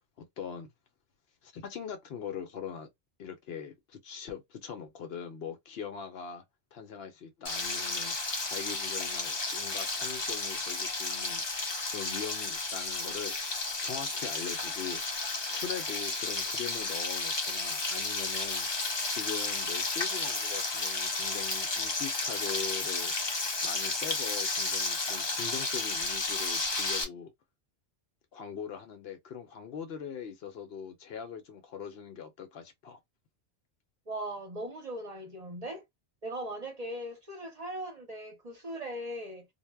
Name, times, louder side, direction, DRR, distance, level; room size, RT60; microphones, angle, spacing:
voice 1, 0.2-0.7 1.4-2.9 3.2-6.4 6.7-8.2 8.5-11.4 11.9-23.1 23.6-27.3 28.3-33.0, left 7 dB, 65° left, 0.8 m, -41 dB
Frying (food), 7.4-27.0, left 3 dB, 35° left, 0.5 m, -32 dB
voice 2, 34.1-35.8 36.2-39.5, right 1 dB, 40° right, 0.7 m, -39 dB
2.1 x 2.0 x 3.3 m
omnidirectional pair, 1.2 m